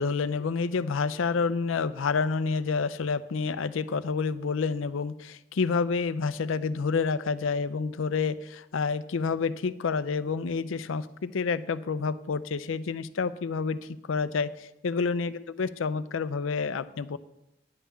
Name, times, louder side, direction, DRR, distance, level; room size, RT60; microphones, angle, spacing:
voice 1, 0.0-13.8 14.1-17.2, left 5 dB, 75° left, 15 dB, 0.5 m, -29 dB
9.9 x 5.6 x 7.2 m, 0.91 s
head